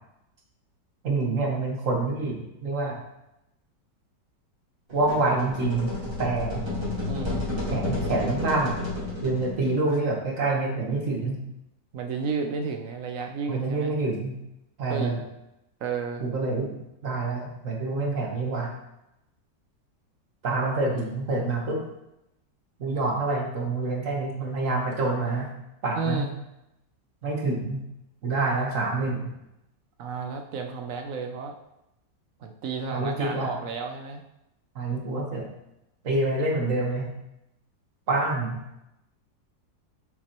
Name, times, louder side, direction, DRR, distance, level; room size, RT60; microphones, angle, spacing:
voice 1, 1.0-3.0 4.9-5.9 6.2-6.6 7.7-8.8 9.2-11.4 13.5-14.4 14.8-15.2 16.2-16.7 17.0-18.7 20.4-21.8 22.8-25.5 25.8-26.3 27.2-27.8 28.2-29.3 32.9-33.5 34.7-35.5 36.0-37.1 38.1-38.6, right 3 dB, 50° right, 0 dB, 1.5 m, -27 dB
sound 1, 4.9-9.8, left 2 dB, 15° right, 1.7 m, -31 dB
voice 2, 7.1-7.4 11.9-13.9 14.9-15.2 15.8-16.2 26.0-26.3 30.0-31.5 32.4-34.2, right 5 dB, 70° right, 4 dB, 0.8 m, -32 dB
7.1 x 6.1 x 3.0 m, 0.88 s
omnidirectional pair, 1.9 m